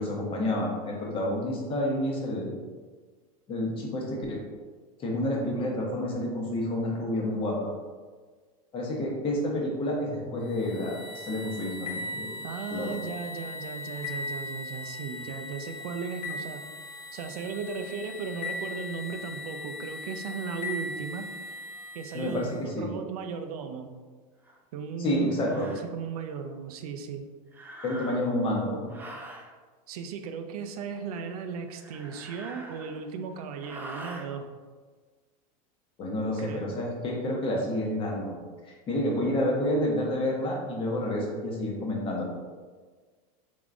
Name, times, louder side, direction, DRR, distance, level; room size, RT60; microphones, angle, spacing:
voice 1, 0.0-2.5 3.5-4.4 5.0-7.7 8.7-12.3 12.7-12.9 22.1-22.9 25.0-25.7 27.8-28.9 36.0-38.3 38.6-42.3, left 1 dB, 30° left, -1 dB, 0.8 m, -29 dB
sound 1, 10.5-22.6, left 2 dB, 70° left, 1.0 m, -39 dB
voice 2, 12.4-16.6 17.1-21.3 21.9-23.9 24.7-27.3 29.9-34.5 36.4-36.8, right 6 dB, 80° right, 7 dB, 0.5 m, -36 dB
sound 2, 24.4-24.6 25.3-25.9 27.5-28.4 28.9-29.5 31.7-33.1 33.6-34.3, right 2 dB, 10° right, 0.3 m, -44 dB
3.6 x 3.5 x 2.5 m, 1.5 s
supercardioid pair, 130°, 19 cm